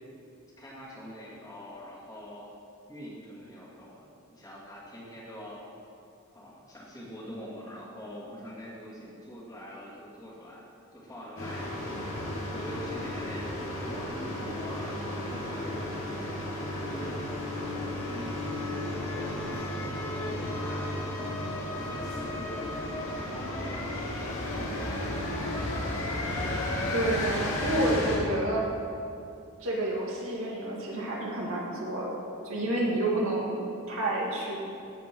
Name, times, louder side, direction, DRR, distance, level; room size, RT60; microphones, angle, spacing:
voice 1, 0.6-2.5 2.9-5.7 6.3-16.4 16.8-17.2 18.1-18.4 18.7-21.1 21.6-22.8 23.3-25.1 25.6-25.9, equal, 15° left, -7 dB, 2.5 m, -44 dB
sound 1, 11.4-28.2, left 1 dB, 65° left, 2.7 m, -33 dB
voice 2, 26.9-28.7 29.6-32.2 32.4-33.6 33.9-34.6, right 1 dB, 65° right, -4 dB, 2.3 m, -29 dB
15.5 x 5.2 x 6.2 m, 2.5 s
head